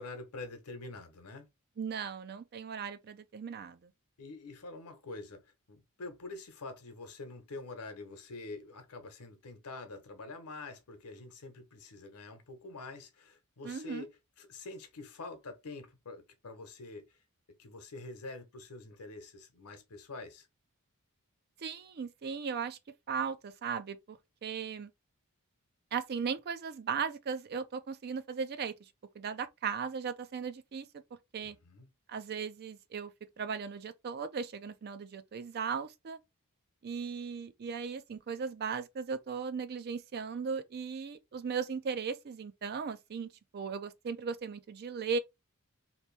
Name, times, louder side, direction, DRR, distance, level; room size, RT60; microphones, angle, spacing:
voice 1, 0.0-1.5 4.2-5.4 5.7-17.2 17.6-20.5 31.4-31.9, left 3 dB, 90° left, 0.9 m, -46 dB
voice 2, 1.8-3.9 13.6-14.1 21.6-22.8 23.1-24.9 25.9-28.9 29.1-30.9 31.3-31.6 32.1-33.1 33.4-36.2 36.8-45.2, right 6 dB, 45° right, 0.4 m, -37 dB
2.9 x 2.6 x 3.1 m
head